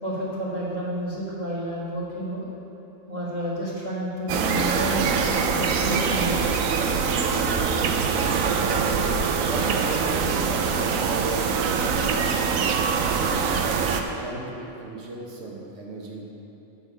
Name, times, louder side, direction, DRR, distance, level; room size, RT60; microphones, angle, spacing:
voice 1, 0.0-2.4 3.1-6.4, equal, 30° left, -7 dB, 1.9 m, -30 dB
sound 1, 4.3-14.0, right 5 dB, 85° right, 1.0 m, -23 dB
voice 2, 7.8-8.7 9.5-13.6 14.2-16.3, right 3 dB, 65° right, -2 dB, 1.4 m, -36 dB
7.6 x 6.9 x 5.5 m, 3.0 s
omnidirectional pair, 1.4 m